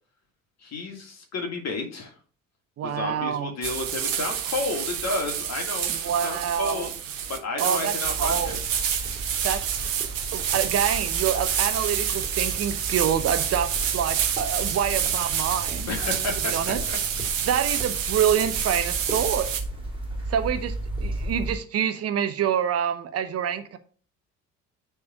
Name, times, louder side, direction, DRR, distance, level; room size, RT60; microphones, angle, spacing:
voice 1, 0.6-2.1 2.8-5.9 6.2-6.9 7.3-8.6 15.9-17.0, left 3 dB, 40° left, 3 dB, 2.0 m, -31 dB
voice 2, 2.8-3.5 5.9-6.9 7.6-7.9 8.2-8.6 9.4-9.6 10.3-15.9 16.5-16.8 17.5-19.5 20.3-20.7 21.0-23.8, right 9 dB, 40° right, 10 dB, 0.8 m, -26 dB
sound 1, 3.6-19.6, right 9 dB, 75° right, 1.0 m, -28 dB
sound 2, 8.0-21.6, right 1 dB, 15° right, 2.4 m, -35 dB
9.6 x 3.6 x 5.0 m, 0.42 s
figure-of-eight pair, 50°, 39 cm